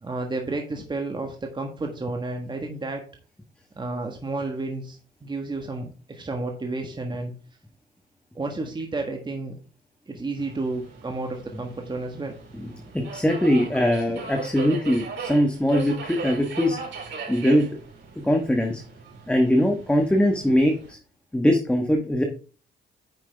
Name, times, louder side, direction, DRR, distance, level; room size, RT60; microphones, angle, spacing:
voice 1, 0.0-3.0 3.8-7.3 8.3-9.6 10.1-12.3, right 2 dB, 25° right, 3 dB, 1.4 m, -31 dB
Subway metro underground, 10.4-20.9, right 4 dB, 70° right, 4.2 m, -38 dB
voice 2, 12.5-16.8 17.3-17.7 18.2-18.8 19.3-21.0 21.3-22.2, equal, 5° left, 3 dB, 1.2 m, -21 dB
8.9 x 6.0 x 3.4 m, 0.38 s
cardioid pair, 90°, 20 cm